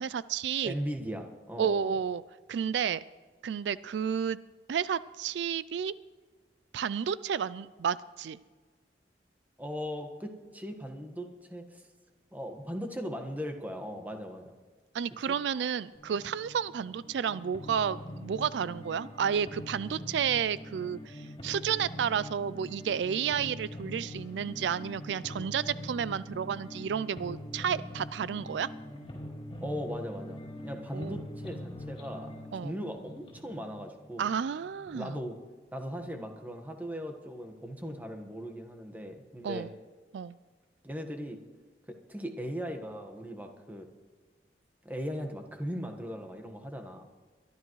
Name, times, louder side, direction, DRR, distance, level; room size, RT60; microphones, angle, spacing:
voice 1, 0.0-0.7 1.6-2.2 2.5-3.0 3.4-4.4 4.7-5.9 6.7-8.4 14.9-28.7 30.9-31.2 32.5-32.7 34.2-35.2 39.4-39.7 40.1-40.4, right 7 dB, 80° right, 18 dB, 0.3 m, -31 dB
voice 2, 0.6-1.9 9.6-11.8 12.3-14.5 15.3-15.4 29.6-32.3 32.6-34.3 34.9-35.4 35.7-39.7 40.8-41.4 41.9-43.9 44.8-47.1, equal, 10° right, 4 dB, 1.4 m, -38 dB
sound 1, 15.9-35.1, left 1 dB, 30° left, 4.6 m, -44 dB
22.5 x 12.5 x 3.2 m, 1.4 s
head